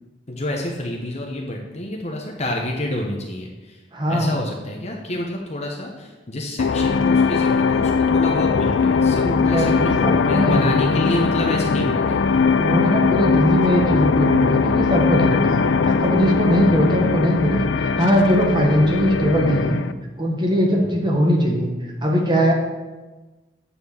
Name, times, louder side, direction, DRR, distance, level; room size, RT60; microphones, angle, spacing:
voice 1, 0.3-3.8 4.1-12.4 15.6-15.9 16.6-17.0 20.8-21.1, left 1 dB, 40° left, 0 dB, 1.0 m, -28 dB
voice 2, 3.9-4.4 9.2-10.7 12.6-15.6 16.0-19.8 20.2-21.7 22.0-22.5, equal, 25° right, 0 dB, 1.3 m, -20 dB
sound 1, 6.6-19.9, left 5 dB, 85° left, 0.4 m, -20 dB
9.1 x 4.5 x 7.0 m, 1.2 s
head